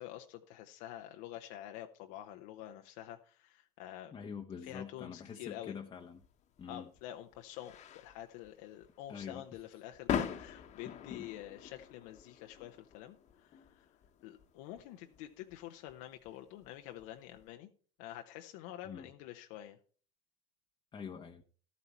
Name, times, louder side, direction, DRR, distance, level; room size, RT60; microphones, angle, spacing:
voice 1, 0.0-4.1 4.6-5.8 6.7-14.0 14.2-17.7 18.0-19.8, left 13 dB, 75° left, 0.9 m, -48 dB
voice 2, 4.1-6.2 6.6-6.9 9.1-9.4 10.9-11.3 18.8-19.1 20.9-21.4, left 6 dB, 30° left, 1.0 m, -45 dB
sound 1, 6.2-17.5, left 8 dB, 50° left, 1.3 m, -44 dB
12.5 x 8.4 x 4.4 m
supercardioid pair, 95°, 15 cm